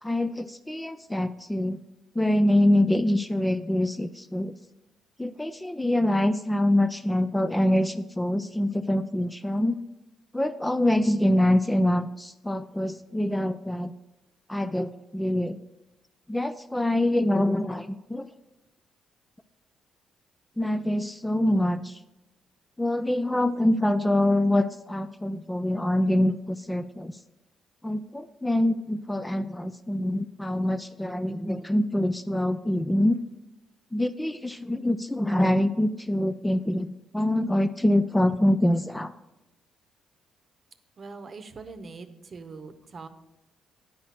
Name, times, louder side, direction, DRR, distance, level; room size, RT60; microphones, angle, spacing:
voice 1, 0.0-1.8 2.2-4.5 5.2-9.8 10.3-13.9 14.5-15.6 16.3-18.3 20.6-22.0 22.8-27.1 27.8-33.2 33.9-39.1, left 1 dB, 10° left, 10 dB, 0.3 m, -25 dB
voice 2, 41.0-43.1, right 4 dB, 40° right, 9 dB, 0.8 m, -42 dB
9.7 x 4.2 x 7.2 m, 0.96 s
cardioid pair, 90°, 0 cm